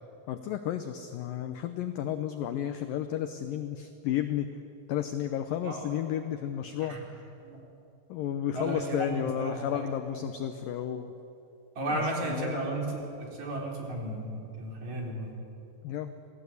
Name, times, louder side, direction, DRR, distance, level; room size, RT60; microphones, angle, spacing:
voice 1, 0.3-4.5 4.9-7.0 8.1-11.1 11.9-12.6 15.8-16.2, left 10 dB, 85° left, 8 dB, 2.0 m, -32 dB
voice 2, 8.5-9.8 10.1-10.2 11.8-15.3, right 1 dB, 40° right, -1 dB, 4.5 m, -34 dB
27.0 x 18.5 x 8.3 m, 2.8 s
omnidirectional pair, 5.1 m